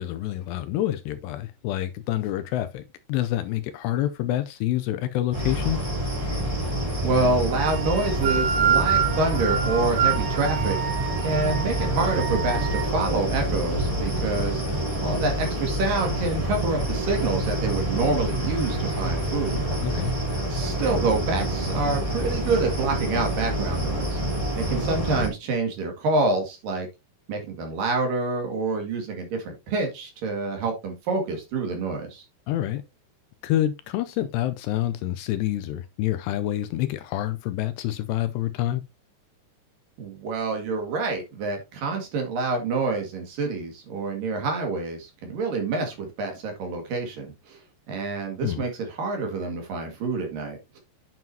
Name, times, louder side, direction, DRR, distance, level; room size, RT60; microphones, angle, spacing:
voice 1, 0.0-2.8 3.1-5.8 19.8-20.1 32.5-32.8 33.4-38.8 48.4-48.6, left 13 dB, 80° left, 2.6 m, -27 dB
sound 1, 5.3-25.3, right 1 dB, 10° right, 2.6 m, -27 dB
voice 2, 7.0-10.8 11.2-14.6 15.0-19.6 19.9-20.0 20.5-24.2 24.6-26.9 27.3-32.2 40.0-47.6 47.9-50.8, right 3 dB, 55° right, 3.3 m, -27 dB
sound 2, 7.6-12.9, right 8 dB, 70° right, 4.3 m, -27 dB
9.2 x 7.7 x 2.8 m
omnidirectional pair, 5.2 m